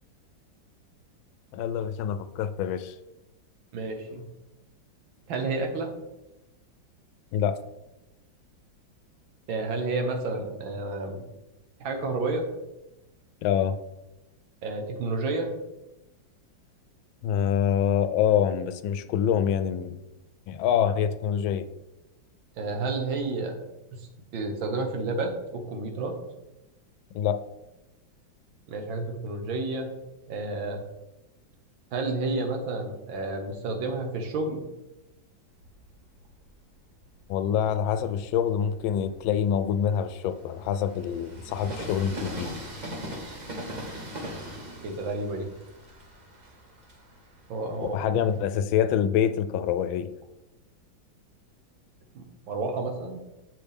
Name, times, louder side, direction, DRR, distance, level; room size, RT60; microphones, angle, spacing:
voice 1, 1.5-3.0 7.3-7.6 13.4-13.8 17.2-20.0 20.5-21.7 27.1-27.4 37.3-42.5 47.9-50.1, left 8 dB, 85° left, 10 dB, 1.3 m, -26 dB
voice 2, 3.7-4.3 5.3-5.9 9.5-11.2 11.8-12.5 14.6-15.5 22.6-23.6 23.9-24.0 24.3-26.1 28.7-29.9 30.3-30.8 31.9-34.6 44.8-45.5 47.5-48.0 52.2-53.2, right 3 dB, 75° right, 4 dB, 1.9 m, -30 dB
Train, 35.5-37.2 37.8-48.4, right 1 dB, 30° right, 0.8 m, -41 dB
7.9 x 6.5 x 3.5 m, 0.96 s
omnidirectional pair, 2.2 m